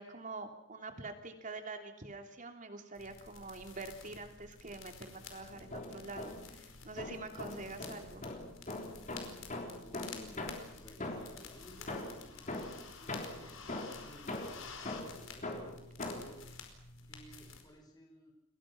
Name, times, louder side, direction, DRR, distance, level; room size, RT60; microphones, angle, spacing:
voice 1, 0.0-8.3, right 3 dB, 40° right, 5 dB, 3.2 m, -46 dB
sound 1, 2.9-17.6, left 5 dB, 90° left, 4.8 m, -51 dB
sound 2, 5.5-6.6 7.0-11.5 11.9-16.4, left 2 dB, 40° left, 4.5 m, -42 dB
voice 2, 9.7-16.4 17.0-18.3, left 1 dB, 20° left, 1 dB, 5.4 m, -57 dB
30.0 x 22.5 x 6.1 m, 0.73 s
head